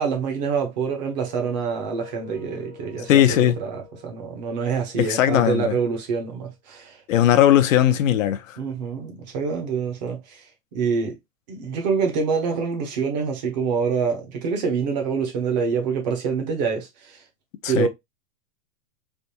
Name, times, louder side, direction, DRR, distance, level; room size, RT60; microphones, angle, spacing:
voice 1, 0.0-7.0 8.6-10.5 10.7-11.1 11.5-17.2 17.7-17.9, right 5 dB, 25° right, 0.8 m, -26 dB
sound 1, 1.1-6.0, left 5 dB, 15° left, 0.7 m, -47 dB
voice 2, 3.1-3.6 5.0-5.8 7.1-8.6 17.6-17.9, left 11 dB, 55° left, 0.6 m, -18 dB
3.5 x 2.6 x 2.6 m
supercardioid pair, 170°, 47 cm